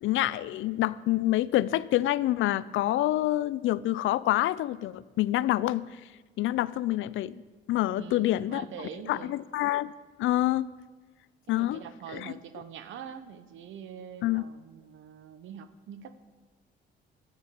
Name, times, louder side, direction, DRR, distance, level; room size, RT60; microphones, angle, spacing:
voice 1, 0.0-5.8 6.4-7.4 7.7-8.6 9.1-9.9 10.2-10.7 11.5-11.8 12.1-12.3 14.2-14.4, left 15 dB, 80° left, 18 dB, 0.5 m, -27 dB
voice 2, 8.0-9.3 11.5-16.2, right 8 dB, 80° right, 11 dB, 0.9 m, -44 dB
12.5 x 9.0 x 6.8 m, 1.3 s
cardioid pair, 90°, 20 cm